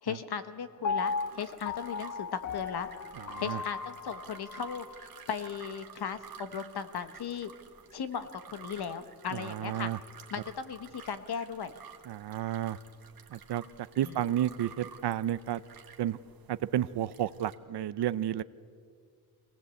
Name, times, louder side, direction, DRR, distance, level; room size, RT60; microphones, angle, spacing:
voice 1, 0.0-2.3 2.5-2.9 3.4-4.8 5.3-7.5 7.9-9.9 10.3-11.7 14.0-14.3, left 7 dB, 75° left, 11 dB, 1.2 m, -37 dB
Piano, 0.8-4.9 5.4-5.5, left 5 dB, 50° left, 0.6 m, -36 dB
sound 1, 1.0-17.6, right 7 dB, 60° right, 1.5 m, -51 dB
voice 2, 3.1-3.6 9.3-10.0 12.1-12.8 13.3-13.6 14.0-15.6 16.0-16.2 16.5-18.4, right 12 dB, 90° right, 16 dB, 0.6 m, -31 dB
24.0 x 17.5 x 8.2 m, 2.3 s
wide cardioid pair, 125°, 39 cm